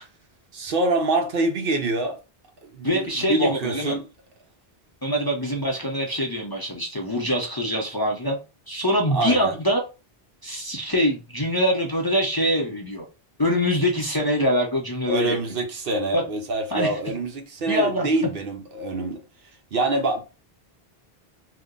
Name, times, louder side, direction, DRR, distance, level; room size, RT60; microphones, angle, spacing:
voice 1, 0.5-2.2 2.6-4.1 9.1-9.6 15.1-19.2 19.7-20.2, right 2 dB, 65° right, 0.9 m, -25 dB
voice 2, 2.8-4.0 5.0-8.4 8.7-9.8 10.4-13.0 13.4-15.4 16.1-16.2 16.7-16.9 17.7-18.1, equal, 30° left, 0.5 m, -24 dB
2.8 x 2.1 x 3.6 m
omnidirectional pair, 1.0 m